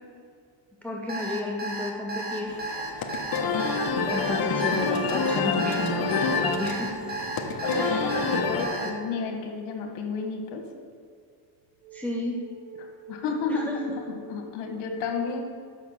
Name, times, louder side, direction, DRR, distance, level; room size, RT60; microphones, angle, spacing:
voice 1, 0.8-2.6 4.1-7.1 7.7-8.1 8.5-8.9 11.9-12.4 13.5-14.0, left 2 dB, 5° left, -1 dB, 0.7 m, -32 dB
Alarm, 1.1-8.9, right 3 dB, 20° right, 1.4 m, -33 dB
sound 1, 2.5-8.6, left 5 dB, 50° left, 1.1 m, -27 dB
sound 2, 2.8-2.9 3.4-9.3 11.8-14.4, right 2 dB, 85° right, 1.2 m, -47 dB
voice 2, 7.6-10.6 13.1-15.4, left 4 dB, 80° left, 3 dB, 1.6 m, -31 dB
6.4 x 6.1 x 7.3 m, 2.2 s
cardioid pair, 115°, 47 cm